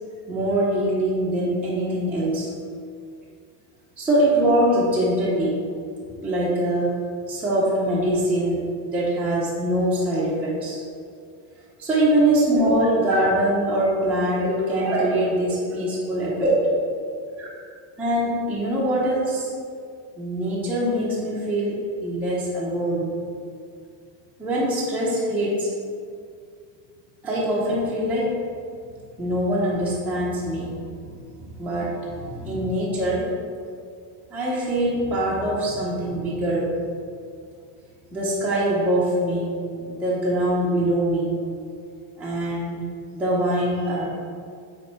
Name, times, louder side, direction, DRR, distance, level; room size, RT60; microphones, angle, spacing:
voice 1, 0.3-2.5 4.0-5.6 6.2-6.9 7.3-10.8 11.8-16.8 17.4-17.5 18.0-19.5 20.2-23.1 24.4-25.7 27.2-28.4 29.2-33.3 34.3-36.8 38.1-41.3 42.2-42.8 43.1-44.1, right 1 dB, 5° right, -8 dB, 0.6 m, -23 dB
7.9 x 3.2 x 4.4 m, 2.3 s
cardioid pair, 170°, 47 cm